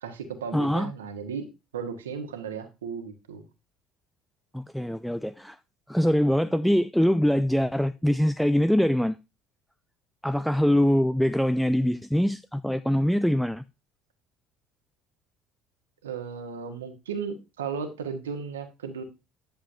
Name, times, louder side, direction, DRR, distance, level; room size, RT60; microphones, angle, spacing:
voice 1, 0.0-1.5 1.7-3.4 16.0-19.0, right 6 dB, 80° right, 1.4 m, -35 dB
voice 2, 0.5-0.9 4.5-5.6 5.9-9.2 10.2-13.6, equal, ahead, 0.4 m, -23 dB
10.5 x 7.0 x 2.7 m
hypercardioid pair, 60°, 0 cm